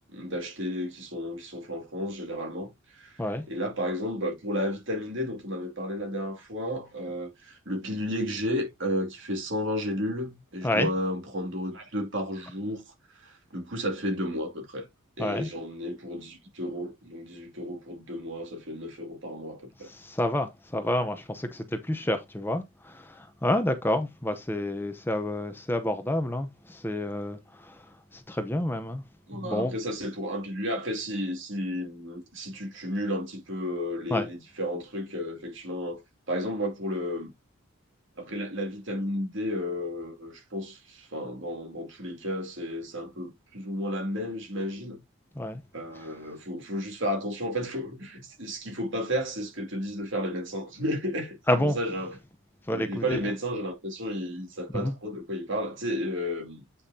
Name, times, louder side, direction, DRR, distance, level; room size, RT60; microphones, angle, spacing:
voice 1, 0.1-3.2 3.5-14.8 15.2-19.9 29.3-37.3 38.2-45.0 45.7-52.2 52.7-56.7, equal, 60° right, 2.5 m, -33 dB
voice 2, 19.8-27.9 28.1-29.0 29.3-29.7 34.1-34.3 45.4-45.6 51.5-51.8 52.7-53.2 54.7-54.9, left 1 dB, 10° left, 0.8 m, -29 dB
8.4 x 5.6 x 2.8 m
head